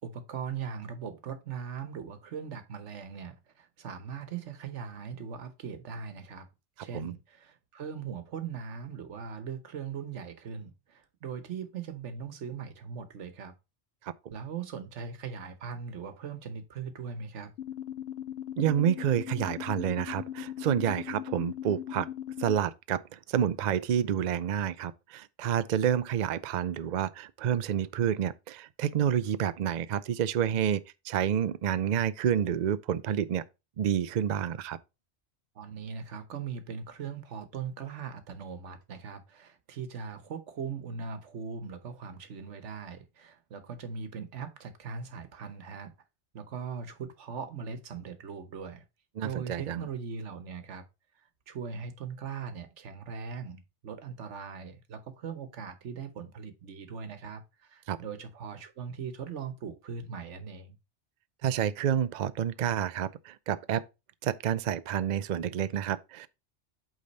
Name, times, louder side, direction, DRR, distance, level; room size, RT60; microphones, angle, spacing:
voice 1, 0.0-6.5 6.8-13.5 14.3-17.5 35.5-45.9 46.3-48.8 49.2-50.8 51.2-60.8, right 6 dB, 85° right, 1.3 m, -40 dB
sound 1, 17.6-22.6, left 11 dB, 70° left, 0.8 m, -39 dB
voice 2, 18.6-22.1 22.4-33.4 33.8-34.8 49.2-49.8 57.9-58.0 61.4-63.8 64.2-66.3, right 9 dB, 55° right, 0.5 m, -29 dB
8.4 x 3.7 x 4.0 m
omnidirectional pair, 1.2 m